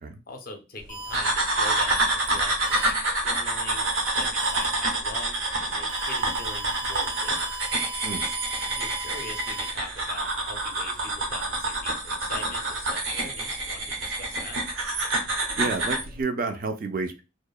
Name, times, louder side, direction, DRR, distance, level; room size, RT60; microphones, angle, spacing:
voice 1, 0.3-2.9 3.2-7.5 8.6-14.6, left 2 dB, 45° left, 5 dB, 0.5 m, -42 dB
sound 1, 0.9-1.1 2.6-2.9 4.4-4.6 5.9-9.7, right 1 dB, 90° right, 1.1 m, -37 dB
sound 2, 1.1-16.1, right 2 dB, 75° right, 0.7 m, -27 dB
voice 2, 15.6-17.2, right 3 dB, 45° right, 6 dB, 0.3 m, -30 dB
2.8 x 2.0 x 2.3 m, 0.28 s
head